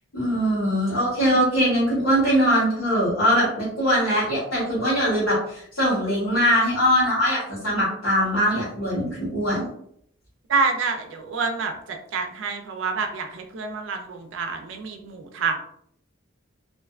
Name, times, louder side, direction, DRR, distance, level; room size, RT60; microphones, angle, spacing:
voice 1, 0.1-9.7, equal, 80° left, -9 dB, 1.2 m, -22 dB
voice 2, 10.5-11.7 12.1-15.6, right 4 dB, 65° right, 4 dB, 0.4 m, -27 dB
2.5 x 2.3 x 2.3 m, 0.68 s
head